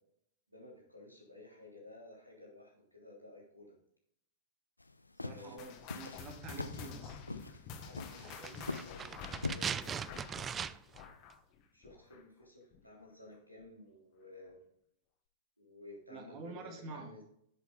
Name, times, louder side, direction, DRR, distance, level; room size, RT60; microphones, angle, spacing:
voice 1, 0.5-3.7 5.2-5.7 7.8-10.8 11.7-14.6 15.6-17.2, left 2 dB, 90° right, -1 dB, 3.4 m, -54 dB
sound 1, 4.8-9.8, left 2 dB, 85° left, 0.6 m, -43 dB
voice 2, 5.2-7.2 16.1-17.1, right 3 dB, 35° right, 5 dB, 2.1 m, -47 dB
sound 2, 5.6-12.4 12.7-13.0 13.6-13.7 14.5-14.6, left 6 dB, 40° left, 1.4 m, -49 dB
sound 3, 8.2-11.0 11.3-11.4, right 7 dB, 20° right, 0.3 m, -40 dB
10.5 x 7.7 x 3.9 m, 0.70 s
figure-of-eight pair, 95°, 0 cm